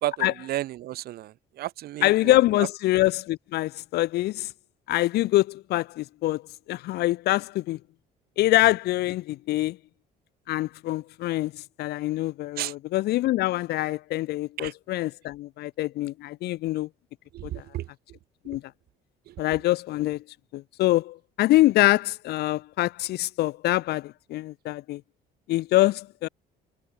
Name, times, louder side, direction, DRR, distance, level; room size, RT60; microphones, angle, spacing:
voice 1, 0.0-2.3 12.6-12.7 14.6-14.7 17.3-17.9 19.3-19.4, right 14 dB, 65° right, 5.0 m, -32 dB
voice 2, 2.0-4.5 4.9-6.4 6.7-7.8 8.4-9.8 10.5-16.9 17.4-17.6 18.5-18.6 19.4-20.2 20.5-25.0 25.5-26.3, left 17 dB, 75° left, 3.4 m, -24 dB
cardioid pair, 135°, 17 cm